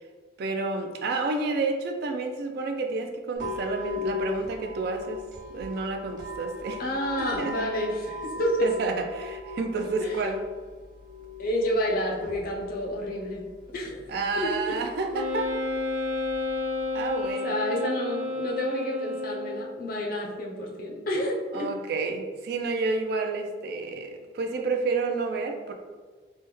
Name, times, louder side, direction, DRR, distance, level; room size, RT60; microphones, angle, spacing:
voice 1, 0.4-5.2 5.5-6.8 7.2-7.5 8.6-10.4 14.1-15.5 16.9-17.6 21.5-25.7, right 3 dB, 55° right, 4 dB, 0.3 m, -30 dB
sound 1, 3.3-17.3, left 3 dB, 70° right, 0.9 m, -40 dB
voice 2, 6.8-8.7 10.0-10.1 11.4-13.4 13.7-14.7 17.4-21.7, equal, 50° left, -1 dB, 0.5 m, -29 dB
Wind instrument woodwind instrument, 15.1-19.8, left 2 dB, 5° right, 0.5 m, -31 dB
3.3 x 2.1 x 3.0 m, 1.4 s
head